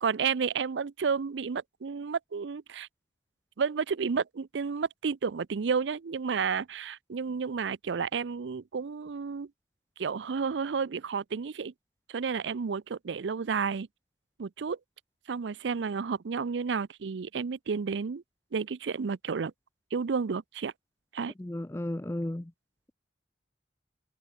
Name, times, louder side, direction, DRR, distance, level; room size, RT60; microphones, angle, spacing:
voice 1, 0.0-2.9 3.6-9.5 10.0-11.7 12.1-13.9 14.4-14.8 15.3-18.2 18.5-19.5 19.9-20.7 21.1-21.3, right 5 dB, 90° right, 0.5 m, -31 dB
voice 2, 21.4-22.5, left 1 dB, 15° left, 0.4 m, -34 dB
head